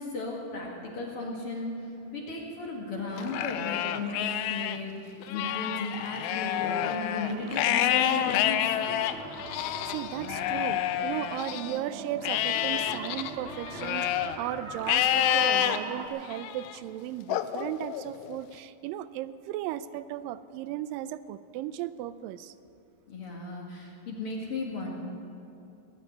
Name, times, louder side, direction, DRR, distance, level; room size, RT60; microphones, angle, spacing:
voice 1, 0.0-1.8 2.1-8.6 23.1-24.9, left 2 dB, 45° left, -2 dB, 2.5 m, -35 dB
Livestock farm animals working animals, 3.2-4.8 5.2-11.8 12.2-14.4 14.9-15.8 16.3-16.7 17.3-18.4, left 12 dB, 85° left, 1.7 m, -28 dB
sound 1, 7.1-16.1, right 5 dB, 70° right, 1.2 m, -42 dB
voice 2, 9.6-22.5, right 13 dB, 85° right, 14 dB, 2.3 m, -36 dB
18.0 x 7.3 x 9.8 m, 2.6 s
omnidirectional pair, 3.9 m